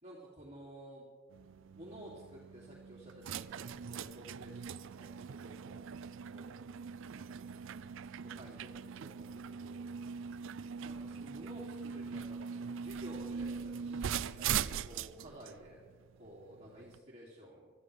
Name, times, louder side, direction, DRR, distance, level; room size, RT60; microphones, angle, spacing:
voice 1, 0.0-1.1 1.8-5.9 6.3-6.6 7.1-7.8 8.3-8.7 9.0-9.9 10.8-15.8 16.2-17.7, equal, 30° right, -6 dB, 2.7 m, -53 dB
sound 1, 1.3-17.0, right 7 dB, 65° right, 0.4 m, -41 dB
23.0 x 14.0 x 3.3 m, 1.5 s
head